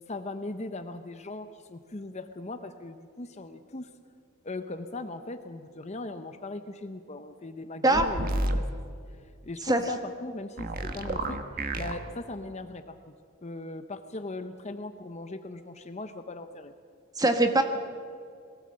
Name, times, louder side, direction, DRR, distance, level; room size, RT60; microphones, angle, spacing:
voice 1, 0.1-3.9 4.4-8.6 9.4-11.4 11.7-13.0 13.4-16.7, left 2 dB, 30° left, 8 dB, 0.8 m, -39 dB
sound 1, 7.9-8.6 10.6-11.9, right 1 dB, 40° right, 1.3 m, -30 dB
voice 2, 17.2-17.6, right 2 dB, 15° right, 6 dB, 1.4 m, -22 dB
22.5 x 16.5 x 7.7 m, 2.3 s
head